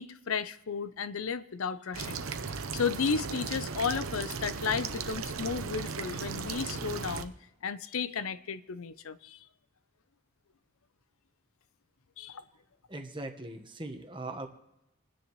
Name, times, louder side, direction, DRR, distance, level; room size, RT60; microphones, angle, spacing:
voice 1, 0.0-2.2 2.5-7.3 7.6-9.4 12.2-12.4, left 6 dB, 80° left, 0.6 m, -33 dB
sound 1, 1.9-7.2, right 5 dB, 80° right, 0.8 m, -36 dB
voice 2, 12.9-14.5, right 2 dB, 20° right, 1.2 m, -40 dB
29.0 x 10.0 x 3.1 m
head